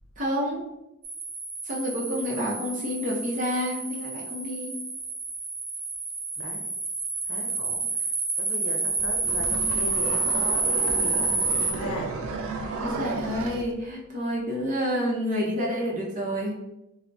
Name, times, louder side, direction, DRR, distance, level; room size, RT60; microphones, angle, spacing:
voice 1, 0.2-0.6 1.6-4.8 12.8-16.6, equal, 35° right, -4 dB, 0.6 m, -29 dB
sound 1, 1.0-11.7, right 3 dB, 60° right, 0.9 m, -29 dB
voice 2, 7.2-12.2, left 2 dB, 85° left, 2 dB, 0.6 m, -38 dB
sound 2, 9.0-13.7, right 3 dB, 80° right, 0.3 m, -34 dB
3.7 x 2.1 x 2.3 m, 0.91 s
head